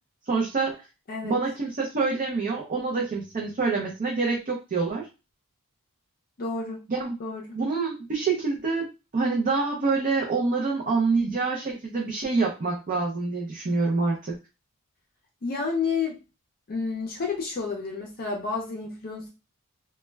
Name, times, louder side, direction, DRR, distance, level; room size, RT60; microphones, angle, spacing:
voice 1, 0.3-0.8 1.2-5.1 6.9-7.1 7.5-14.4, right 4 dB, 35° right, -1 dB, 0.5 m, -26 dB
voice 2, 6.4-6.8 7.2-7.5 15.4-16.2 16.7-19.3, left 4 dB, 40° left, 0 dB, 0.5 m, -30 dB
2.2 x 2.1 x 3.2 m, 0.29 s
head